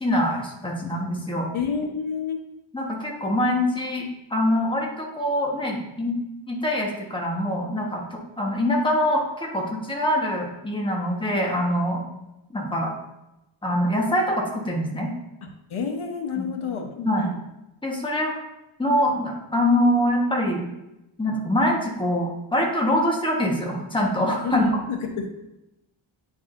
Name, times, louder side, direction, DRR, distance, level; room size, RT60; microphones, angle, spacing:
voice 1, 0.0-1.5 2.7-6.1 6.5-12.0 12.5-12.9 13.6-15.1 16.4-16.5 17.0-17.3 17.8-18.3 18.8-20.7 21.2-24.7, left 1 dB, 10° left, -1 dB, 1.2 m, -24 dB
voice 2, 1.5-2.4 15.4-17.4 24.4-25.3, left 6 dB, 80° left, 3 dB, 1.0 m, -29 dB
9.2 x 4.7 x 2.6 m, 0.93 s
wide cardioid pair, 125°, 48 cm